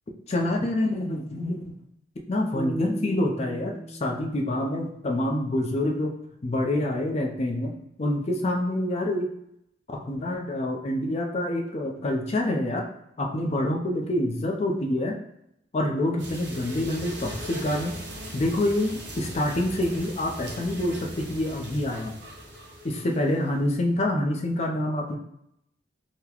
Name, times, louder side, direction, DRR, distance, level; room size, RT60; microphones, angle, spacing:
voice 1, 0.3-1.8 2.3-6.1 6.4-7.7 8.0-9.3 9.9-12.9 13.2-15.2 15.7-17.9 18.3-22.1 22.8-25.2, left 1 dB, 35° left, 1 dB, 0.5 m, -27 dB
sound 1, 2.5-5.7, right 1 dB, 15° right, 0.9 m, -37 dB
sound 2, 16.2-23.7, equal, 65° right, 0.8 m, -39 dB
3.9 x 2.1 x 2.9 m, 0.78 s
head